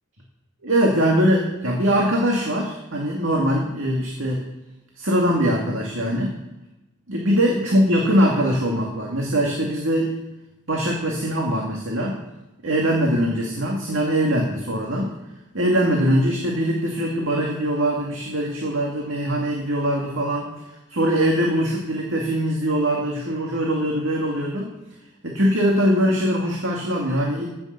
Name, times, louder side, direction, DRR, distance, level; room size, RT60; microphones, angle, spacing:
voice 1, 0.6-4.4 5.0-6.3 7.1-10.2 10.7-12.2 12.6-15.1 15.5-20.5 20.9-24.7 25.2-27.5, equal, 70° right, -1 dB, 2.4 m, -22 dB
15.5 x 7.2 x 6.7 m, 1.0 s
head